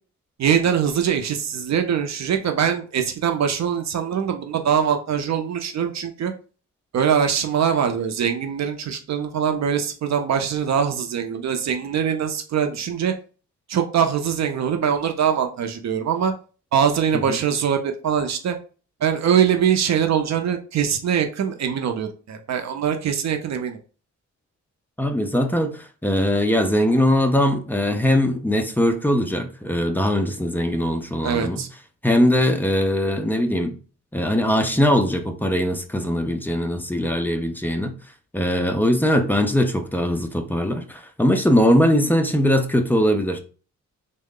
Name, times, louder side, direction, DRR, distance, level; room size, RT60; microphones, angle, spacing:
voice 1, 0.4-6.3 6.9-13.1 13.7-16.3 16.7-18.6 19.0-23.8 31.2-31.7, right 8 dB, 60° right, 0.5 m, -22 dB
voice 2, 25.0-31.6 32.0-33.7 34.1-38.0 38.3-43.4, left 1 dB, 5° left, 0.4 m, -21 dB
3.6 x 2.1 x 3.6 m
wide cardioid pair, 135°, 31 cm